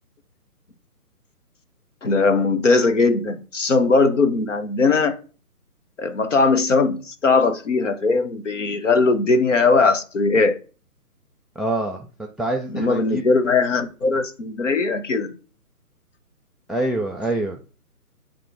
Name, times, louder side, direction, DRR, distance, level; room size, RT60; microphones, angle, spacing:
voice 1, 2.0-5.2 6.0-10.6 12.7-15.3, left 4 dB, 50° left, 0.9 m, -19 dB
voice 2, 11.6-13.2 16.7-17.6, right 1 dB, ahead, 0.4 m, -26 dB
8.3 x 3.0 x 4.7 m
hypercardioid pair, 175°, 46 cm